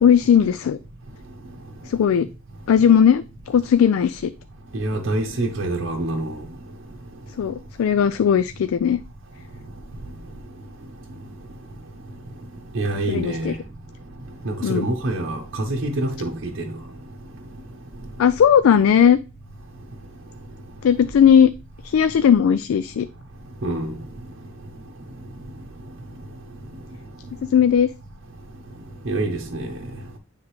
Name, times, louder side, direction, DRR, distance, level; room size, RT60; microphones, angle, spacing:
voice 1, 0.0-0.8 1.8-2.3 2.7-4.3 7.4-9.0 13.1-13.6 14.6-14.9 18.2-19.2 20.8-21.5 21.8-23.1 27.5-27.9, left 8 dB, 80° left, 0.3 m, -17 dB
voice 2, 4.7-6.3 12.7-13.5 14.4-15.4 15.7-16.5 23.6-23.9 29.1-29.7, right 2 dB, 55° right, 0.8 m, -25 dB
9.3 x 3.6 x 3.1 m
head